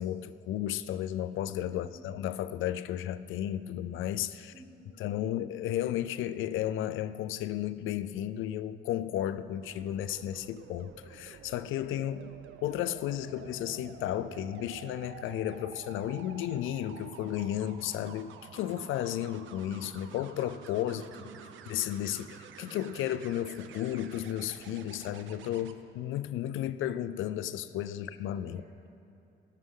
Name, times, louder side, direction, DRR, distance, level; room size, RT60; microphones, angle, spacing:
voice 1, 0.0-4.5 5.0-21.0 21.7-28.6, left 12 dB, 80° left, 0.4 m, -33 dB
voice 2, 1.7-2.1 4.5-5.4 20.9-21.7 28.4-28.9, right 2 dB, 50° right, 2.6 m, -55 dB
sound 1, 9.6-25.7 27.6-27.9, right 8 dB, 75° right, 0.7 m, -50 dB
19.0 x 6.5 x 3.8 m
cardioid pair, 90°, 20 cm